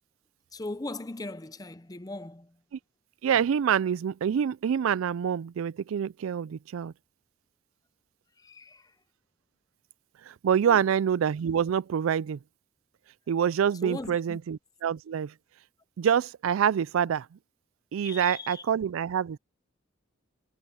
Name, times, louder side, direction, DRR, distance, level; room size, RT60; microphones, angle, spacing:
voice 1, 0.5-2.6 8.4-8.9 10.6-10.8 13.8-14.4 18.0-18.6, left 2 dB, 20° left, 0.7 m, -39 dB
voice 2, 3.2-6.9 10.3-12.4 13.3-15.3 16.0-17.4 17.9-19.4, right 8 dB, 80° right, 0.3 m, -26 dB
head